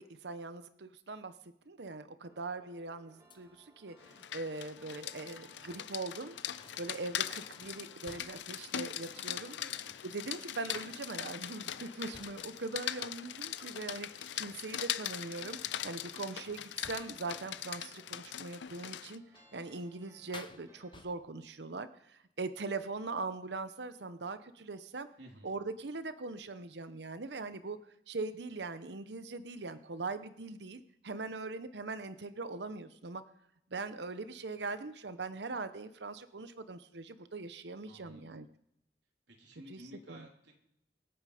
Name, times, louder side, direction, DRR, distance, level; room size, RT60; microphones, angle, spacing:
voice 1, 0.0-1.3 1.7-6.4 6.8-9.6 10.1-19.2 19.5-25.1 25.4-27.8 28.1-33.2 33.7-38.5 39.7-39.8 40.1-40.2, right 3 dB, 75° right, 12 dB, 0.8 m, -41 dB
sound 1, 2.3-21.0, right 1 dB, 20° right, 2.0 m, -63 dB
sound 2, 3.3-3.7 5.3-6.0 6.6-8.5 9.6-10.2 10.5-11.3 11.7-12.7 14.2-14.9 15.5-17.3 18.6-19.0 19.3-20.0 20.3-21.4, left 4 dB, 25° left, 0.7 m, -56 dB
Rain, 4.0-19.2, left 11 dB, 85° left, 0.6 m, -41 dB
voice 2, 25.2-25.5 37.9-38.4 39.3-40.5, equal, 90° right, 0 dB, 3.5 m, -54 dB
24.5 x 8.8 x 5.0 m, 0.76 s
head